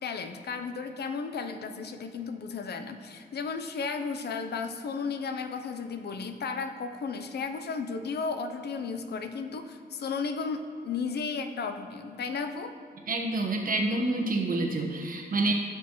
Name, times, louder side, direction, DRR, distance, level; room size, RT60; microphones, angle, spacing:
voice 1, 0.0-12.8, left 5 dB, 65° left, 8 dB, 0.6 m, -34 dB
voice 2, 13.1-15.5, right 2 dB, 50° right, 1 dB, 1.2 m, -28 dB
15.0 x 6.2 x 3.1 m, 2.3 s
wide cardioid pair, 115°, 18 cm